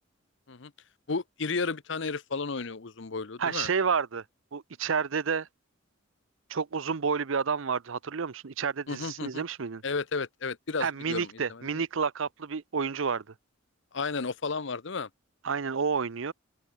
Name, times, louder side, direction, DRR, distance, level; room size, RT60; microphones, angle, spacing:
voice 1, 1.1-3.7 8.9-9.4 9.8-11.8 13.9-15.1, left 4 dB, 60° left, 0.8 m, -33 dB
voice 2, 3.4-4.2 4.5-5.5 6.5-9.8 10.8-13.2 15.4-16.3, right 5 dB, 70° right, 0.7 m, -30 dB
open air
head